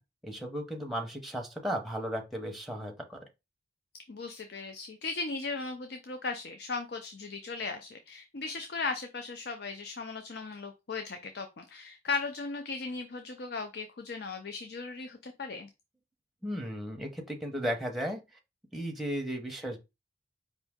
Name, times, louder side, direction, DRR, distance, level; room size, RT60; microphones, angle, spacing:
voice 1, 0.2-3.2 16.4-18.2 18.7-19.8, equal, ahead, 0.7 m, -35 dB
voice 2, 4.1-15.7, left 4 dB, 55° left, 0.5 m, -37 dB
5.0 x 2.7 x 3.5 m
head